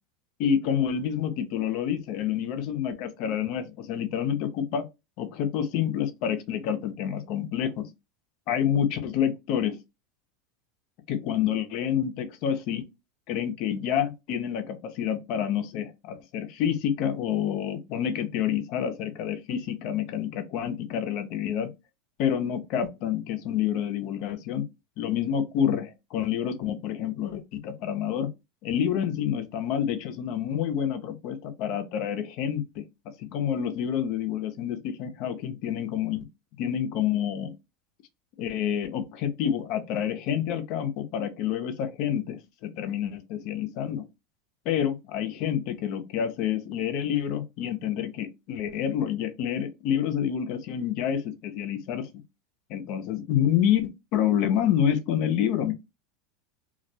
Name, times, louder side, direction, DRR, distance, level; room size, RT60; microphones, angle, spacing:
voice 1, 0.4-4.8 5.2-7.9 8.5-9.8 11.1-12.9 13.3-21.7 22.2-24.7 25.0-28.3 28.6-32.8 33.2-36.3 36.6-37.5 38.4-44.0 44.7-52.2 52.7-55.7, left 9 dB, 60° left, 0.5 m, -28 dB
2.2 x 2.1 x 2.6 m
hypercardioid pair, 100°, 0 cm